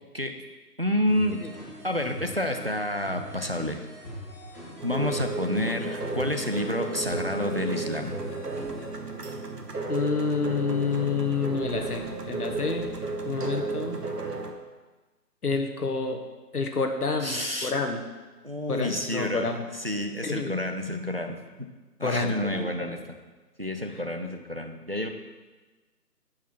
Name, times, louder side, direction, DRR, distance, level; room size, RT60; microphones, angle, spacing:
voice 1, 0.8-1.4 1.8-3.9 4.8-8.1 17.2-17.7 18.4-19.5 19.7-21.7 22.0-23.0 23.6-25.1, left 1 dB, 40° right, 5 dB, 0.5 m, -29 dB
sound 1, 1.1-8.9, equal, 10° left, 1.1 m, -41 dB
sound 2, 4.8-14.5, right 3 dB, 70° right, 1.2 m, -33 dB
voice 2, 9.9-12.9 13.2-14.0 15.4-16.2 16.5-18.0 18.7-19.7 20.2-20.5 22.0-23.0, left 4 dB, 65° left, 5 dB, 1.2 m, -29 dB
9.7 x 4.9 x 4.5 m, 1.3 s
figure-of-eight pair, 155°, 49 cm